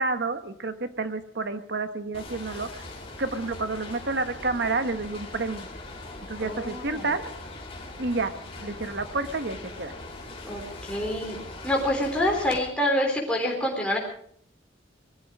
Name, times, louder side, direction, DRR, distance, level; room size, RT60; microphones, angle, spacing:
voice 1, 0.0-2.8 3.2-5.7 6.3-7.2 8.0-8.3 8.6-9.9, right 3 dB, 60° right, 9 dB, 1.3 m, -29 dB
sound 1, 2.1-12.6, left 2 dB, 30° left, 2.9 m, -41 dB
voice 2, 6.4-7.1 10.4-11.4 11.6-14.0, left 1 dB, 5° left, -2 dB, 3.8 m, -27 dB
21.0 x 14.5 x 4.9 m, 0.65 s
head